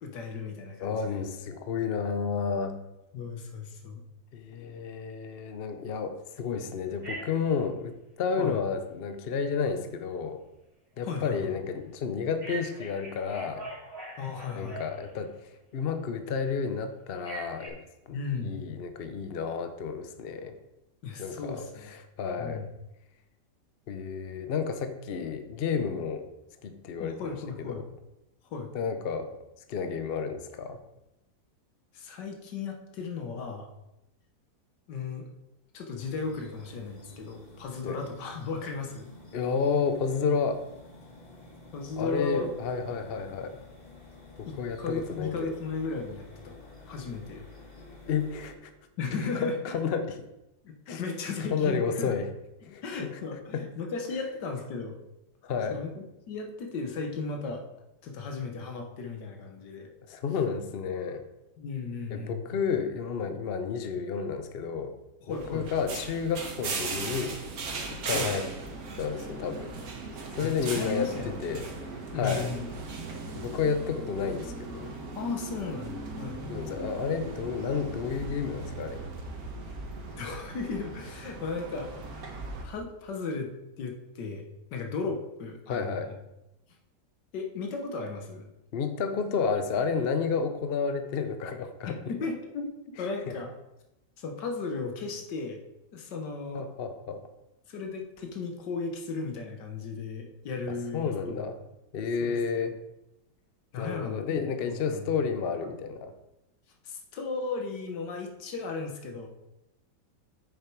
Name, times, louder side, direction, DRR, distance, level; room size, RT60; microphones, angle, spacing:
voice 1, 0.0-1.2 3.1-4.0 8.4-8.6 11.0-11.5 14.2-14.8 18.1-18.6 21.0-21.9 22.4-22.7 27.0-27.8 28.5-28.7 31.9-33.7 34.9-35.3 35.7-39.1 41.7-42.5 44.5-46.5 46.9-47.4 49.0-49.8 50.6-52.1 52.7-55.0 55.7-57.6 58.0-59.9 61.6-62.5 65.2-65.7 68.0-68.3 70.4-71.5 72.1-72.7 75.2-76.8 79.7-79.8 80.2-82.3 82.6-83.5 83.8-86.2 87.3-88.5 91.9-92.7 93.0-93.5 94.2-95.6 95.9-96.7 97.7-101.5 102.2-102.7 103.7-104.2 104.6-105.1 105.6-105.7 106.8-109.3, left 4 dB, 85° left, 4 dB, 1.7 m, -35 dB
voice 2, 0.8-2.8 4.3-10.4 11.0-13.7 14.5-15.4 15.7-17.8 18.1-20.6 21.2-22.7 23.9-26.3 26.6-27.9 28.7-29.3 29.7-30.8 37.8-38.0 39.3-40.6 42.0-43.6 44.4-45.3 48.1-48.7 49.4-50.3 50.9-51.0 51.5-52.3 52.6-53.2 53.5-53.7 55.4-55.8 60.1-61.2 62.1-64.9 65.3-67.4 67.9-68.5 69.0-69.7 70.3-72.5 73.3-75.0 76.5-79.1 85.7-86.1 88.7-92.0 93.0-93.3 96.5-97.3 100.7-101.6 101.9-102.8 103.8-106.1, left 6 dB, 60° left, 8 dB, 0.6 m, -31 dB
Telephone, 7.0-7.5 12.4-15.3 17.2-17.7, right 3 dB, 15° right, 2.9 m, -42 dB
sound 1, 36.0-48.5, left 2 dB, 25° left, 1.4 m, -51 dB
sound 2, 65.3-82.6, right 3 dB, 65° right, 1.5 m, -38 dB
7.3 x 6.8 x 4.6 m, 0.91 s
omnidirectional pair, 1.8 m